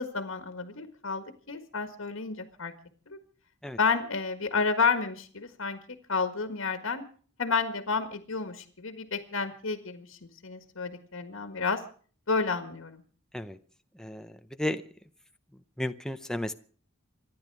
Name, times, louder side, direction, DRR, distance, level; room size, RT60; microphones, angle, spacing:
voice 1, 0.0-2.7 3.1-3.2 3.8-5.8 6.1-7.0 7.4-11.8 12.3-13.0, left 4 dB, 65° left, 9 dB, 1.7 m, -30 dB
voice 2, 14.0-14.8 15.8-16.5, left 1 dB, 5° left, 8 dB, 0.7 m, -33 dB
26.0 x 11.0 x 4.8 m, 0.43 s
head